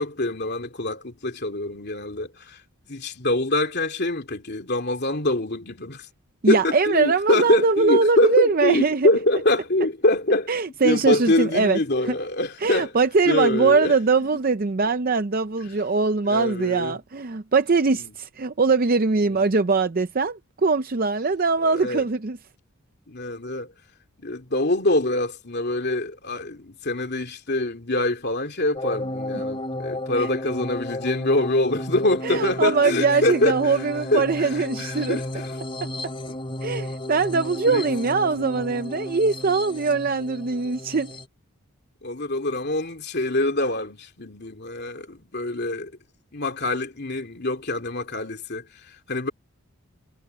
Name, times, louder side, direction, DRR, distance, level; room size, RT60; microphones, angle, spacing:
voice 1, 0.0-2.6 2.9-6.1 6.5-10.5 10.8-12.9 13.3-13.9 14.2-14.3 15.7-15.8 16.2-17.0 19.3-19.5 21.6-22.1 23.1-23.7 24.2-33.8 34.1-35.6 36.3-36.4 37.7-37.8 42.0-45.9 46.3-49.3, left 2 dB, 50° left, 2.9 m, -25 dB
voice 2, 6.4-9.1 10.5-11.8 12.1-12.2 12.6-22.4 30.2-30.3 32.2-35.2 36.6-41.1, right 4 dB, 40° right, 0.5 m, -22 dB
sound 1, 28.8-41.3, left 1 dB, 25° left, 2.9 m, -33 dB
head